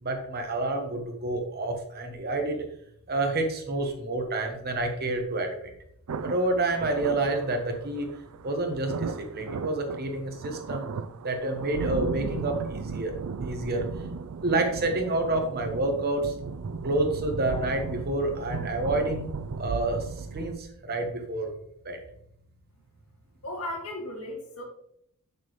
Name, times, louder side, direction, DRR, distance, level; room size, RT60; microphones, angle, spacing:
voice 1, 0.0-2.7 3.1-5.5 6.2-8.1 8.4-10.9 11.2-13.1 13.4-13.9 14.4-16.3 16.8-19.3 19.6-21.5 21.8-22.0, right 2 dB, 45° right, 4 dB, 1.2 m, -28 dB
sound 1, 6.1-20.6, right 5 dB, 75° right, 0.4 m, -36 dB
voice 2, 23.4-24.6, left 1 dB, 70° left, -1 dB, 2.3 m, -35 dB
6.9 x 6.6 x 3.2 m, 0.70 s
head